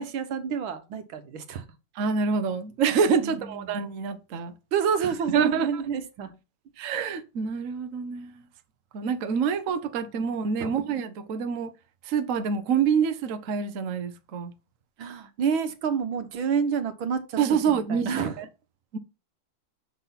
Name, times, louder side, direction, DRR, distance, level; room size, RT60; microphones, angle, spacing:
voice 1, 0.0-1.6 3.2-3.8 4.7-6.3 10.6-10.8 15.0-17.4 17.7-18.4, right 6 dB, 85° right, 1.9 m, -29 dB
voice 2, 2.0-4.5 5.3-5.8 6.8-8.3 8.9-11.7 12.1-14.5 17.4-18.4 18.9-19.0, right 6 dB, 50° right, 1.1 m, -26 dB
6.7 x 6.1 x 5.7 m
omnidirectional pair, 2.2 m